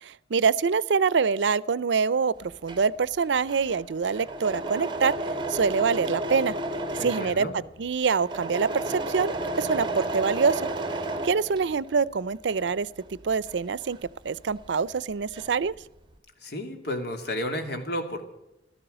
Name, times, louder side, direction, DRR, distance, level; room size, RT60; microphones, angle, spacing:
voice 1, 0.0-5.1 5.5-6.5 7.0-7.5 7.8-10.6 11.2-12.9 13.2-14.0 14.2-15.7, right 5 dB, 85° right, 21 dB, 0.5 m, -25 dB
Engine / Mechanisms, 2.4-12.0 12.4-14.7 15.0-15.7, right 2 dB, 25° right, 1.6 m, -33 dB
voice 2, 6.9-7.6 16.4-18.2, left 1 dB, 65° left, 5 dB, 2.8 m, -32 dB
15.0 x 13.5 x 6.7 m, 0.90 s
head